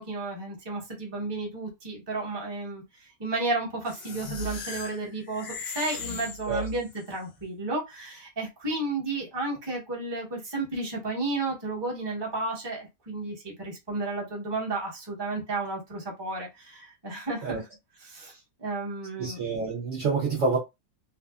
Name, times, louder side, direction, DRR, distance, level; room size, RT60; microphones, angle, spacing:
voice 1, 0.0-17.6 18.0-19.4, right 2 dB, 20° right, 0.8 m, -33 dB
sound 1, 3.9-7.1, left 3 dB, 65° left, 0.6 m, -38 dB
voice 2, 19.2-20.6, right 4 dB, 55° right, 0.9 m, -27 dB
2.7 x 2.3 x 2.3 m
omnidirectional pair, 1.7 m